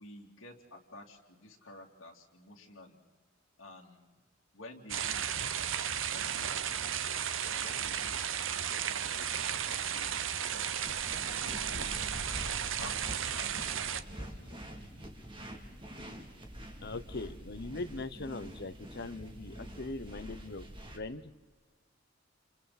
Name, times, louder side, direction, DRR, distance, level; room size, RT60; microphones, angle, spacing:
voice 1, 0.0-3.1 3.6-4.1 4.5-5.4 5.9-7.0 7.4-10.1 10.5-10.8 11.4-14.9, left 2 dB, 80° left, -3 dB, 3.1 m, -52 dB
sound 1, 4.9-14.0, right 8 dB, 75° right, 1.0 m, -34 dB
sound 2, 10.8-21.0, equal, 25° right, 2.9 m, -46 dB
voice 2, 16.8-20.7 20.9-21.3, left 2 dB, 55° left, 12 dB, 1.1 m, -41 dB
29.5 x 29.5 x 4.3 m, 1.4 s
head